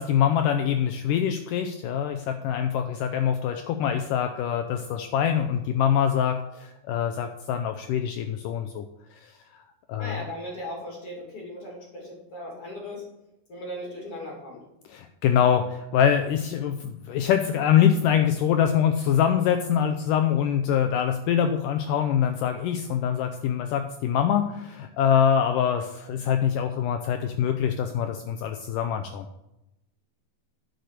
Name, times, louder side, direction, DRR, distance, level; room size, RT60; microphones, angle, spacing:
voice 1, 0.0-8.9 9.2-9.3 9.9-10.2 14.9-29.3, left 9 dB, 80° left, 7 dB, 2.0 m, -24 dB
voice 2, 10.0-13.1 13.5-14.6, left 1 dB, 40° left, -2 dB, 3.1 m, -37 dB
10.0 x 6.7 x 6.5 m, 0.89 s
omnidirectional pair, 4.3 m